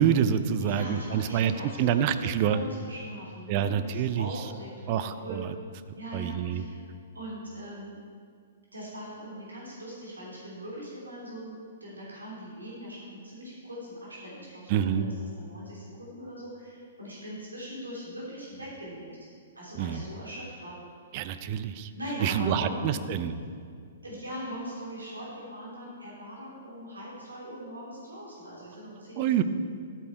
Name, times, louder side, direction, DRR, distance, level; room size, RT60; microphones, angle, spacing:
voice 1, 0.0-1.5 1.8-2.6 3.5-4.3 4.9-5.5 6.1-6.7 14.7-15.1 19.7-20.0 21.1-21.9 22.2-23.4 29.2-29.4, right 9 dB, 40° right, 11 dB, 0.6 m, -26 dB
voice 2, 0.6-5.4 5.9-6.8 7.1-8.0 8.7-19.1 19.5-20.9 21.9-23.0 24.0-29.3, equal, 80° right, -6 dB, 3.1 m, -40 dB
11.5 x 8.4 x 4.5 m, 2.2 s
figure-of-eight pair, 115°, 0 cm